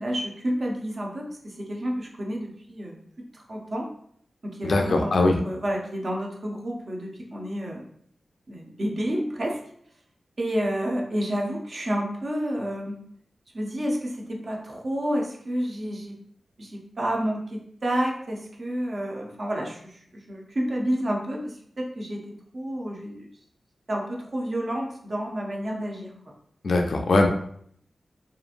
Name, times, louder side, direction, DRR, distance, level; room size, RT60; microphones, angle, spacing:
voice 1, 0.0-3.0 3.3-3.9 4.4-7.8 8.5-9.6 10.4-12.9 13.5-16.2 16.6-23.3 23.9-26.3, equal, 45° right, -1 dB, 0.6 m, -30 dB
voice 2, 4.6-5.4 26.6-27.3, left 2 dB, 70° left, 3 dB, 0.4 m, -21 dB
2.8 x 2.4 x 2.5 m, 0.65 s
wide cardioid pair, 110°, 0 cm